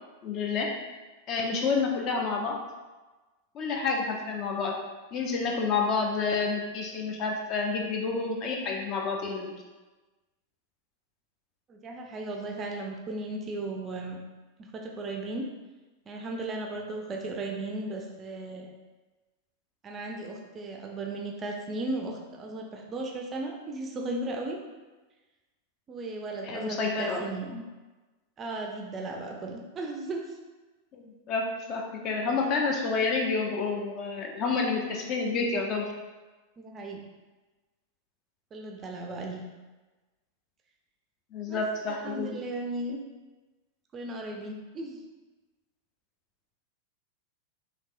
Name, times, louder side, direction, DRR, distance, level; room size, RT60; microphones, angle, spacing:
voice 1, 0.2-0.7 1.3-2.6 3.5-4.7 5.1-9.5 26.4-27.2 30.9-35.8 41.3-42.4, left 4 dB, 35° left, 1 dB, 0.5 m, -29 dB
voice 2, 11.7-14.2 14.6-15.4 16.1-18.7 19.8-24.6 25.9-27.6 28.4-30.4 36.6-37.0 38.5-39.4 41.5-41.6 41.9-43.0 43.9-45.0, right 2 dB, 25° right, 1 dB, 0.4 m, -36 dB
3.3 x 2.9 x 2.5 m, 1.2 s
figure-of-eight pair, 90°, 0 cm